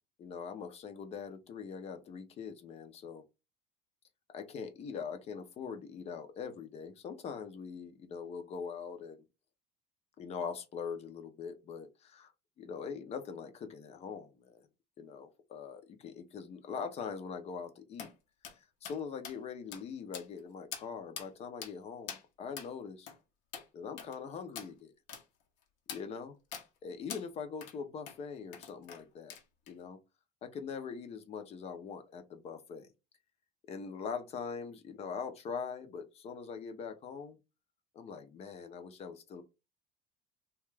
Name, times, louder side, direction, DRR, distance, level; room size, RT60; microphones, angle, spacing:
voice 1, 0.2-3.2 4.3-9.2 10.2-12.3 12.6-14.6 15.0-18.1 18.6-23.1 23.7-24.9 25.9-26.4 26.8-29.4 29.7-30.0 30.4-32.9 33.7-37.4 37.9-39.4, left 6 dB, 35° left, 0.6 m, -42 dB
sound 1, 18.0-18.1 18.4-18.6 18.8-19.0 19.2-19.4 19.7-19.8 20.1-20.4 20.7-20.9 21.2-21.3 21.6-21.7 22.1-22.2 22.6-22.7 23.1-23.2 23.5-23.7 24.0-24.2 24.6-24.7 25.1-25.2 25.9-26.0 26.5-26.7 27.1-27.2 27.6-27.8 28.1-28.2 28.5-29.0 29.3-29.7, left 8 dB, 70° left, 0.8 m, -44 dB
2.8 x 2.3 x 3.2 m
cardioid pair, 145°, 18 cm